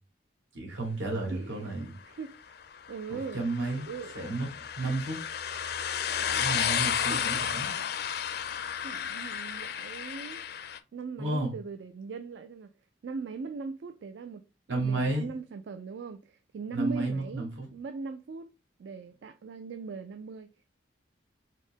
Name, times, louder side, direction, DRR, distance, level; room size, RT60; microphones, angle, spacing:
voice 1, 0.5-1.9 3.1-3.9 4.1-4.5 4.8-5.2 6.3-7.7 11.2-11.6 14.7-15.3 16.7-17.7, right 2 dB, 85° right, 2.1 m, -32 dB
voice 2, 1.3-2.5 2.9-3.4 3.7-4.1 7.1-7.4 8.8-10.4 10.9-12.7 13.0-14.4 14.7-18.5 18.8-20.5, right 4 dB, 70° right, 0.4 m, -40 dB
sound 1, 2.6-10.8, left 8 dB, 55° left, 0.5 m, -32 dB
4.2 x 3.5 x 3.5 m
head